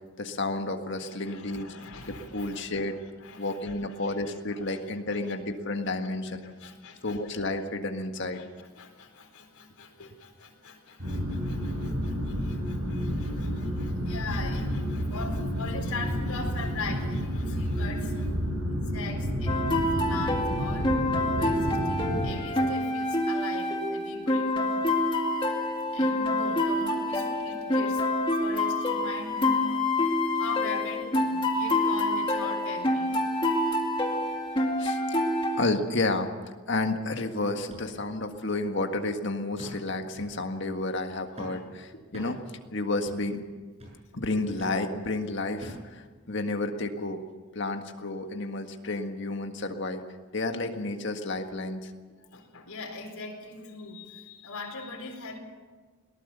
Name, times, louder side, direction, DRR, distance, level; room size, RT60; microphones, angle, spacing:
voice 1, 0.2-1.7 2.3-3.0 3.4-6.5 7.0-8.4 34.8-35.0 35.6-36.3 36.7-42.4 42.7-43.4 44.1-47.2 47.6-50.0 50.3-51.9, left 2 dB, 55° left, 5 dB, 1.8 m, -31 dB
voice 2, 1.0-4.1 4.5-4.8 5.1-5.3 5.7-5.8 6.4-7.4 8.3-18.3 18.7-20.9 21.4-25.0 25.9-28.1 28.4-29.9 30.3-33.1 52.3-55.4, left 4 dB, 85° left, 2 dB, 4.3 m, -41 dB
sound 1, 11.0-22.3, equal, 85° right, 4.8 m, -30 dB
sound 2, 19.5-35.6, left 1 dB, 25° left, 2.1 m, -27 dB
sound 3, 37.7-37.9 38.4-38.5 39.6-39.9 40.2-40.4 41.4-41.6 42.1-42.4 43.1-43.3 43.8-44.0 44.6-44.8 45.6-45.9 46.6-46.7, equal, 30° right, 7.2 m, -43 dB
22.0 x 18.5 x 6.9 m, 1.4 s
head